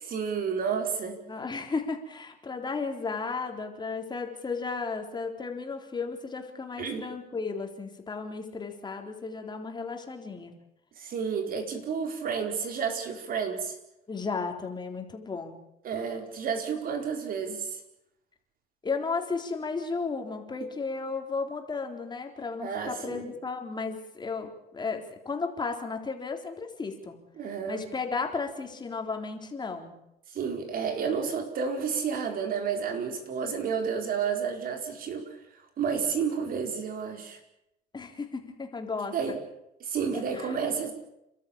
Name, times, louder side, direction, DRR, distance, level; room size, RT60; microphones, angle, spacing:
voice 1, 0.0-1.2 6.8-7.1 11.0-13.8 15.8-17.8 22.6-23.3 27.4-27.8 30.3-35.3 35.8-37.4 39.1-39.4 39.8-40.9, right 6 dB, 60° right, 5 dB, 4.7 m, -31 dB
voice 2, 1.3-10.5 14.1-15.6 18.8-27.2 27.7-29.9 37.9-39.4 40.3-40.6, left 4 dB, 25° left, 4 dB, 3.9 m, -34 dB
29.5 x 13.0 x 8.9 m, 0.86 s
cardioid pair, 110°, 17 cm